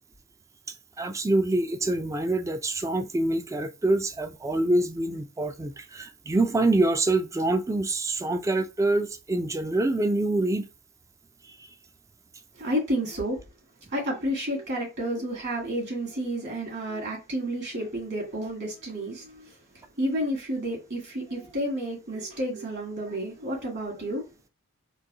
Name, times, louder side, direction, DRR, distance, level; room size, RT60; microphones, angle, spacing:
voice 1, 1.0-10.7 11.6-11.7, right 2 dB, 15° right, 0.3 m, -25 dB
voice 2, 12.5-13.4 13.9-24.3, equal, 55° right, 2.0 m, -31 dB
3.9 x 2.6 x 2.7 m
head